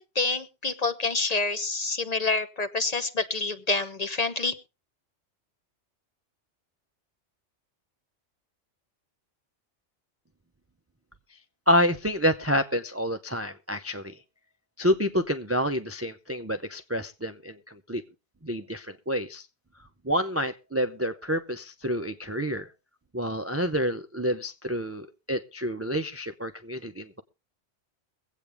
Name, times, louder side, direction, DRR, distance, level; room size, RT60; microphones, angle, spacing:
voice 1, 0.0-4.5, left 3 dB, 40° left, 11 dB, 0.7 m, -27 dB
voice 2, 11.7-14.2 14.8-18.0 18.4-19.5 20.0-22.7 23.1-27.2, equal, 20° right, 8 dB, 0.4 m, -28 dB
23.0 x 8.3 x 3.4 m, 0.30 s
omnidirectional pair, 1.2 m